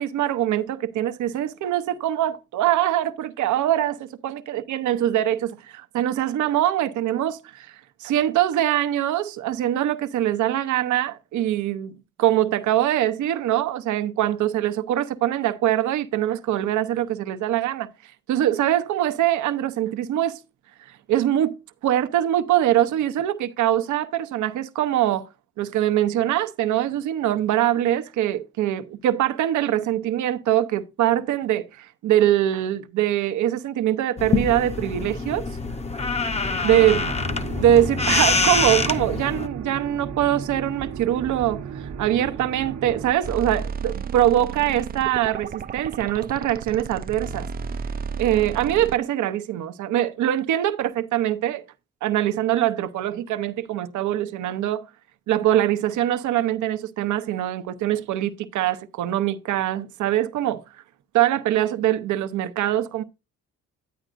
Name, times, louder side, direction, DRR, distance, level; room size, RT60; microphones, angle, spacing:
voice 1, 0.0-11.9 12.2-20.4 21.1-21.6 21.8-25.3 25.6-35.5 36.6-37.1 37.6-47.5 48.2-51.6 52.0-54.8 55.3-60.6 61.1-63.0, right 12 dB, 75° right, 0.7 m, -23 dB
sound 1, 34.2-39.5, left 4 dB, 20° left, 0.7 m, -25 dB
sound 2, 36.8-43.1, right 7 dB, 60° right, 1.0 m, -35 dB
sound 3, 43.2-49.0, right 6 dB, 30° right, 0.4 m, -33 dB
10.5 x 9.0 x 2.5 m
cardioid pair, 90°, 30 cm